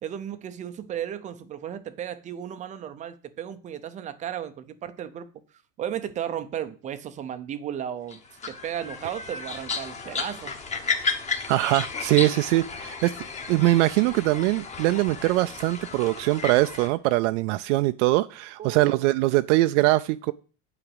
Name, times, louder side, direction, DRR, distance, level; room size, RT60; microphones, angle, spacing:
voice 1, 0.0-5.3 5.8-8.2 8.5-10.6 18.6-19.0, right 10 dB, 20° right, 0.5 m, -34 dB
sound 1, 8.1-16.9, left 4 dB, 20° left, 1.1 m, -33 dB
voice 2, 11.5-13.1 13.5-20.3, right 18 dB, 70° right, 0.5 m, -22 dB
9.0 x 5.0 x 7.8 m
cardioid pair, 170°, 38 cm